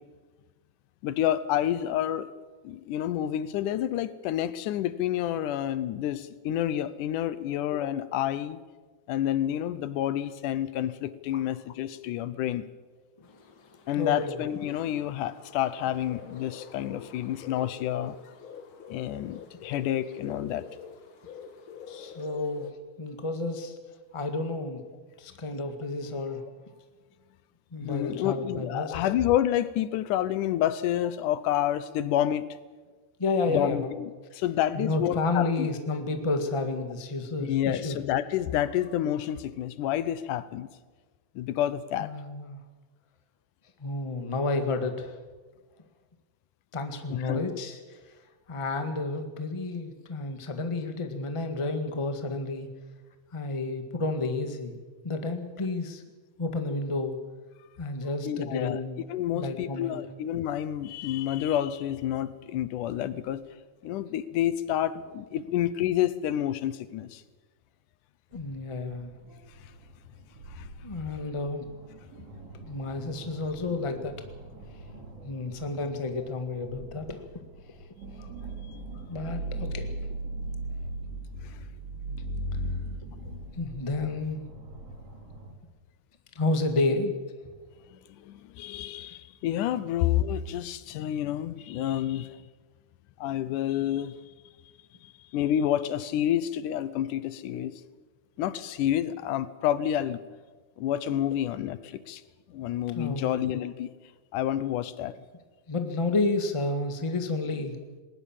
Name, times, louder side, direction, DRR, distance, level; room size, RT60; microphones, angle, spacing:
voice 1, 1.0-2.3 2.6-8.6 9.1-12.7 13.9-18.2 18.9-20.7 27.8-32.5 33.5-35.7 37.4-40.7 41.4-42.1 47.1-47.6 58.3-58.8 59.1-63.4 63.8-67.2 70.5-70.7 78.2-78.3 87.9-92.4 93.2-94.1 95.0-97.7 98.4-100.2 100.8-102.2 102.5-103.9 104.3-105.1, left 11 dB, 85° left, 15 dB, 2.4 m, -29 dB
sound 1, 13.2-22.7, left 6 dB, 50° left, 2.0 m, -47 dB
voice 2, 13.9-14.4 21.9-22.7 23.0-23.8 24.1-24.8 25.2-26.5 27.7-28.9 33.2-34.0 34.7-38.0 42.0-42.6 43.8-45.2 46.7-48.0 48.5-52.7 53.3-54.8 55.0-56.0 56.4-57.2 57.8-59.0 59.3-59.9 68.3-69.1 70.8-71.7 72.6-74.2 74.7-75.0 75.2-77.2 78.9-79.9 83.5-84.4 86.3-87.1 102.9-103.5 105.7-107.9, left 3 dB, 15° left, 6 dB, 1.1 m, -31 dB
sound 2, 68.3-85.5, right 1 dB, 50° right, 3.8 m, -39 dB
20.5 x 19.5 x 7.4 m, 1.3 s
omnidirectional pair, 3.6 m